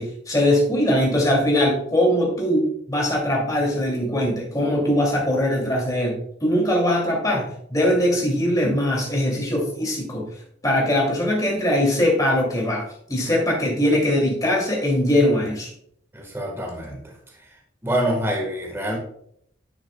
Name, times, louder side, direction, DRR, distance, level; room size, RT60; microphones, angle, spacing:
voice 1, 0.0-10.3 10.6-15.7, left 1 dB, 20° left, -2 dB, 2.4 m, -21 dB
voice 2, 16.1-17.0 17.8-19.0, equal, 10° right, 0 dB, 1.4 m, -25 dB
10.5 x 6.3 x 2.2 m, 0.68 s
head